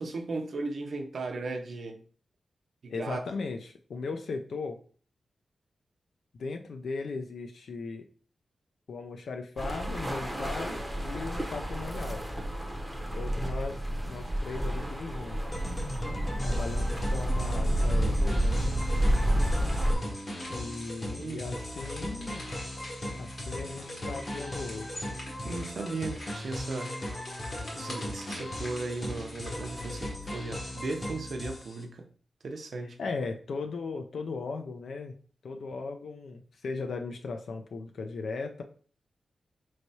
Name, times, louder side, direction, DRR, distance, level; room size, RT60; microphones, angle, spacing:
voice 1, 0.0-2.0 2.8-3.2 21.1-21.6 25.4-27.0 27.7-32.1 32.4-33.0, right 3 dB, 60° right, 0.6 m, -36 dB
voice 2, 2.9-4.8 6.3-8.1 8.9-12.3 13.2-15.4 16.4-18.8 20.5-22.5 23.2-25.0 33.0-35.1 35.4-38.6, left 4 dB, 75° left, 0.4 m, -37 dB
sound 1, 9.6-19.9, equal, ahead, 0.7 m, -29 dB
sound 2, 15.5-31.8, left 1 dB, 30° left, 0.8 m, -38 dB
sound 3, 18.1-30.1, left 1 dB, 55° left, 1.4 m, -48 dB
4.5 x 3.2 x 2.7 m
wide cardioid pair, 135°, 0 cm